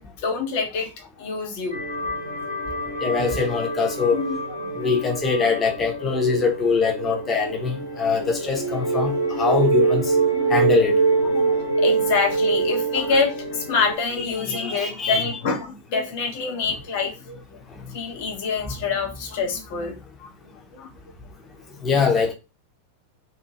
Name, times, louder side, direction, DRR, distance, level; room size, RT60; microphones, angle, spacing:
voice 1, 0.0-1.8 3.0-3.1 4.1-4.9 10.3-10.5 11.2-17.4 17.9-20.3 20.7-20.9, left 4 dB, 50° left, 0.9 m, -27 dB
sound 1, 1.7-13.9, right 4 dB, 85° left, 1.3 m, -25 dB
voice 2, 3.0-4.2 4.8-10.2 10.5-11.0 14.3-15.2 17.8-17.9 18.6-18.8 21.8-22.3, left 5 dB, 20° left, 0.9 m, -23 dB
2.7 x 2.6 x 2.9 m
figure-of-eight pair, 90°, 0 cm